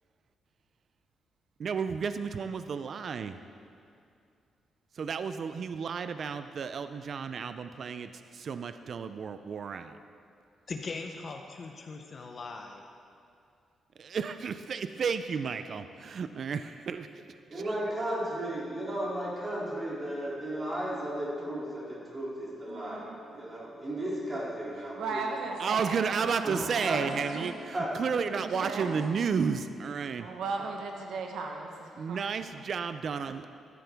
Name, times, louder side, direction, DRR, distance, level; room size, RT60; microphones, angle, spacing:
voice 1, 1.6-3.4 5.0-10.0 14.0-17.1 25.6-30.3 32.0-33.5, right 6 dB, 45° right, 10 dB, 0.4 m, -32 dB
voice 2, 10.7-12.8, left 4 dB, 35° left, 4 dB, 0.7 m, -40 dB
voice 3, 17.5-25.3 26.4-27.0 27.7-27.9 30.2-30.3 30.6-30.7, right 1 dB, 20° right, -5 dB, 2.6 m, -35 dB
voice 4, 22.7-23.2 25.0-27.5 28.3-29.0 30.2-32.2 32.6-32.7, right 4 dB, 80° right, 2 dB, 1.1 m, -37 dB
13.0 x 11.5 x 3.5 m, 2.4 s
cardioid pair, 160°, 0 cm